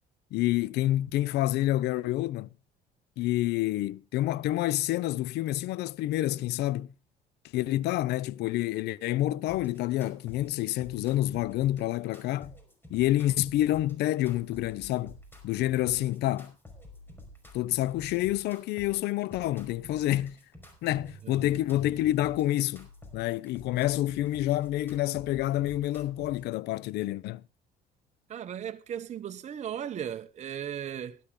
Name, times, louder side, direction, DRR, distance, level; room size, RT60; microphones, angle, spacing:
voice 1, 0.3-2.5 3.2-6.9 7.5-12.5 12.9-15.2 15.4-16.5 17.5-20.4 20.8-22.9 23.1-27.4, left 15 dB, 80° left, 0.6 m, -28 dB
sound 1, 9.5-26.5, left 1 dB, 10° left, 5.1 m, -50 dB
voice 2, 28.3-31.2, right 9 dB, 45° right, 0.9 m, -37 dB
17.0 x 11.5 x 3.8 m
cardioid pair, 110°, 17 cm